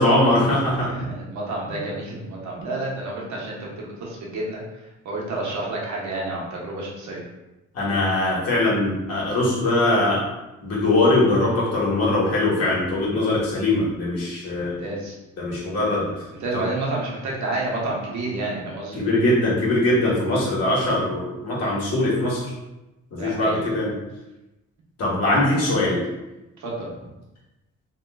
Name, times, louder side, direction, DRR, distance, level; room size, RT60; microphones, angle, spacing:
voice 1, 0.0-0.9 1.7-1.8 7.7-10.2 10.6-14.8 15.4-16.2 16.5-16.6 19.0-22.4 23.1-24.0 25.0-26.0, left 2 dB, 55° left, -6 dB, 1.4 m, -21 dB
voice 2, 0.9-4.6 5.0-7.2 14.6-15.2 16.4-19.0 23.2-23.6 25.6-25.7 26.6-27.1, right 2 dB, 70° right, -3 dB, 1.0 m, -30 dB
3.0 x 3.0 x 2.3 m, 1.0 s
cardioid pair, 90°, 30 cm